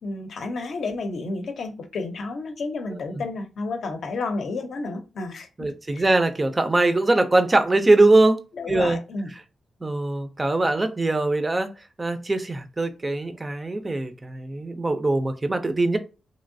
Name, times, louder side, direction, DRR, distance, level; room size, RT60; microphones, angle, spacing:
voice 1, 0.0-6.0 8.6-9.3, left 3 dB, 60° left, 0.6 m, -31 dB
voice 2, 2.9-3.2 5.6-8.4 8.7-9.0 9.8-11.7 12.0-16.0, right 2 dB, 20° right, 0.4 m, -22 dB
3.0 x 2.7 x 2.6 m
cardioid pair, 115°, 0 cm